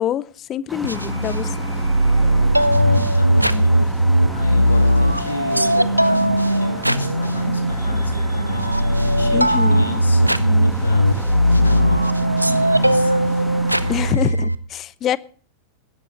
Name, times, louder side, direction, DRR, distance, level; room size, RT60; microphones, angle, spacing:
voice 1, 0.0-1.6 9.3-9.9 13.9-15.2, left 11 dB, 30° left, 0.6 m, -25 dB
sound 1, 0.7-14.1, right 1 dB, ahead, 1.5 m, -34 dB
sound 2, 0.8-14.5, equal, 90° right, 0.7 m, -18 dB
voice 2, 2.9-3.9 4.3-8.8 9.2-11.1 11.5-13.5, left 3 dB, 80° left, 1.9 m, -32 dB
16.5 x 12.0 x 4.0 m
figure-of-eight pair, 90°, 0 cm